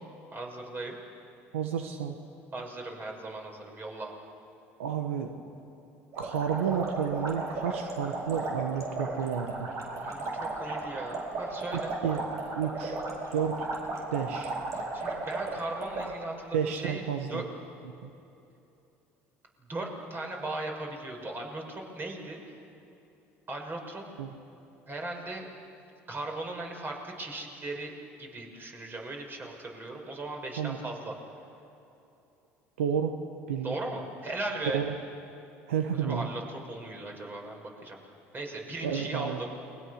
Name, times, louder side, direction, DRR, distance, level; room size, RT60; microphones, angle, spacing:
voice 1, 0.3-1.0 2.5-4.1 10.0-11.9 14.7-17.0 17.3-17.4 19.6-22.4 23.5-24.0 24.9-25.5 26.1-27.9 28.2-31.1 33.6-34.8 36.0-38.0 38.3-39.5, right 2 dB, 30° right, 1 dB, 6.1 m, -38 dB
voice 2, 1.5-2.2 4.8-5.4 6.2-9.8 12.0-12.2 12.6-13.0 13.3-13.7 14.1-14.5 16.5-17.4 17.8-18.1 24.2-24.3 30.6-30.8 32.8-33.2 33.5-33.7 34.7-34.9 35.7-36.3 38.8-39.4, right 8 dB, 90° right, 6 dB, 1.3 m, -31 dB
sound 1, 6.1-16.1, right 2 dB, 50° right, 5.8 m, -35 dB
29.5 x 22.5 x 6.6 m, 2.8 s
hypercardioid pair, 75°, 7 cm